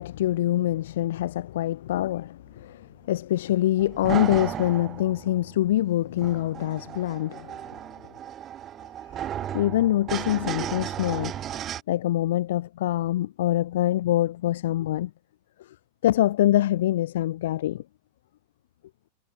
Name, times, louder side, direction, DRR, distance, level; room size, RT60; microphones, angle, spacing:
voice 1, 0.0-7.5 9.5-15.1 16.0-17.8, left 13 dB, 75° left, 0.5 m, -25 dB
sound 1, 3.8-11.8, right 10 dB, 30° right, 0.9 m, -35 dB
supercardioid pair, 135°, 0 cm